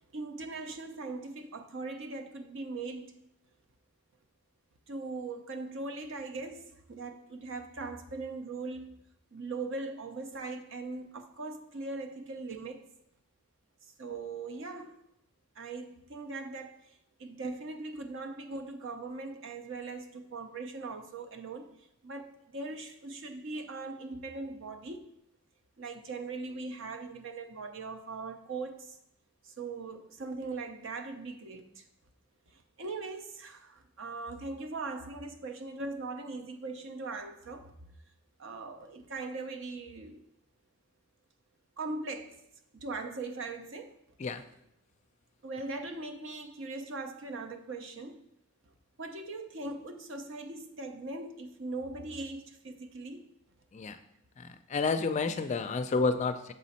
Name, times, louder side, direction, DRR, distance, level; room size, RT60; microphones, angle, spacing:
voice 1, 0.1-3.2 4.9-9.0 9.3-12.8 14.0-15.0 15.6-16.9 17.2-21.7 22.0-25.1 25.8-29.0 29.4-31.8 32.5-37.7 38.4-40.2 41.8-42.4 42.7-44.0 45.4-48.2 49.0-53.3, right 3 dB, 60° right, 6 dB, 0.6 m, -40 dB
voice 2, 54.4-56.5, left 4 dB, 30° left, 9 dB, 0.3 m, -30 dB
6.7 x 4.1 x 4.2 m, 0.78 s
head